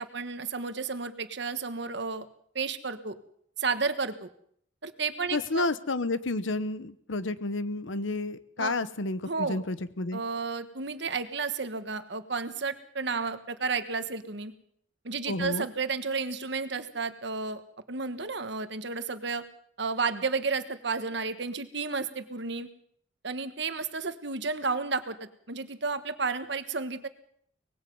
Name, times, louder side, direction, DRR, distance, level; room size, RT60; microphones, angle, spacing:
voice 1, 0.0-2.3 2.5-3.2 3.6-4.3 4.8-5.7 8.6-8.7 9.2-9.6 10.1-14.5 15.0-17.6 17.9-19.4 19.8-22.7 23.2-27.1, right 4 dB, 65° right, 10 dB, 1.4 m, -32 dB
voice 2, 5.3-10.2 15.3-15.7, left 2 dB, 85° left, 14 dB, 1.0 m, -31 dB
24.0 x 19.5 x 5.4 m, 0.66 s
head